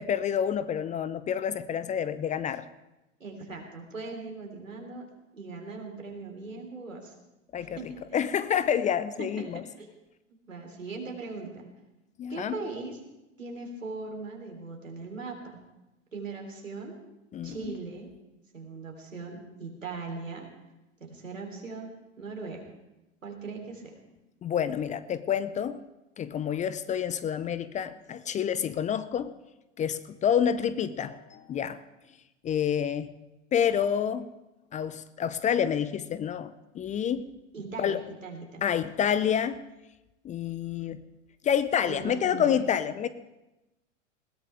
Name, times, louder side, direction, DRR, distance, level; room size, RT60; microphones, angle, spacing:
voice 1, 0.0-2.7 7.5-9.6 12.2-12.5 17.3-17.7 24.4-25.8 26.2-29.3 29.8-31.8 32.4-33.1 33.5-34.3 34.7-37.3 37.8-38.0 38.6-39.6 40.2-41.0 41.4-43.1, left 8 dB, 20° left, 14 dB, 0.6 m, -28 dB
voice 2, 3.2-5.1 5.3-7.1 7.6-8.2 9.2-9.9 10.5-11.7 12.3-13.0 13.4-15.6 16.1-16.9 17.4-18.1 18.5-20.5 21.0-22.6 23.2-23.9 37.5-38.7 41.8-42.7, right 3 dB, 85° right, 1 dB, 3.6 m, -39 dB
20.5 x 17.5 x 3.5 m, 0.97 s
figure-of-eight pair, 90°, 38 cm